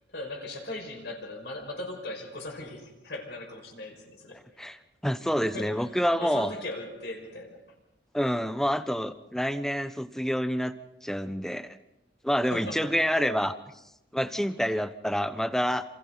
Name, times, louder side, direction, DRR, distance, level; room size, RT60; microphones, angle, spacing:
voice 1, 0.1-4.6 5.4-7.6 12.4-12.9, left 2 dB, 60° left, 2 dB, 5.5 m, -39 dB
voice 2, 5.0-6.5 8.1-10.7 11.0-11.8 12.2-13.5 14.1-15.8, equal, ahead, 11 dB, 0.9 m, -27 dB
28.5 x 27.5 x 4.0 m, 0.90 s
head